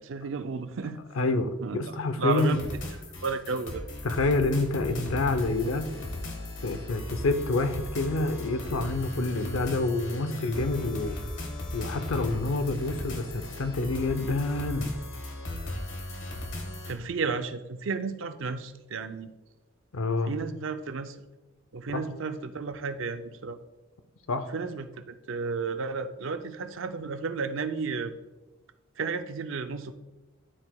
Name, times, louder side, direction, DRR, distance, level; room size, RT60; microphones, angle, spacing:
voice 1, 0.0-1.0 1.6-2.7 3.2-3.8 16.9-19.3 20.3-21.2 21.7-23.6 24.5-28.1 29.0-29.9, right 4 dB, 70° right, 9 dB, 0.5 m, -33 dB
voice 2, 1.2-2.6 4.0-5.9 6.6-11.2 11.7-14.9 19.9-20.3 21.9-22.0 24.3-24.5, left 2 dB, 80° left, 10 dB, 0.6 m, -27 dB
sound 1, 2.3-16.9, left 1 dB, 65° left, 1.3 m, -37 dB
12.5 x 4.8 x 2.3 m, 1.1 s
head